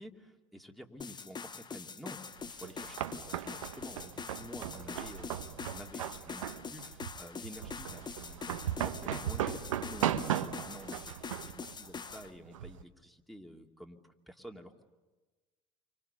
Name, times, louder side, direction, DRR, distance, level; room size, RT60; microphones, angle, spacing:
voice 1, 0.0-2.2 2.5-14.8, equal, ahead, 3 dB, 2.8 m, -50 dB
sound 1, 1.0-12.3, left 5 dB, 25° left, 1.0 m, -44 dB
sound 2, 2.4-12.8, right 10 dB, 90° right, 1.0 m, -37 dB
29.5 x 25.0 x 6.9 m, 1.3 s
hypercardioid pair, 70°, 16 cm